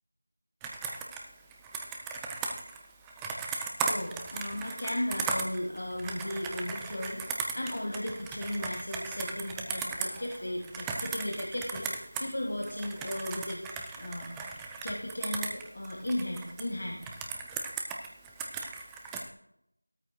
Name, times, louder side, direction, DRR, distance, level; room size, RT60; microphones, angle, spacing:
Computer keyboard, 0.6-12.3 12.6-16.6 17.0-19.3, right 4 dB, 5° right, 0.3 m, -37 dB
voice 1, 3.8-13.6 13.9-14.3 14.8-17.0, left 1 dB, 45° left, 0 dB, 1.6 m, -35 dB
16.0 x 13.0 x 2.2 m, 0.78 s
figure-of-eight pair, 175°, 0 cm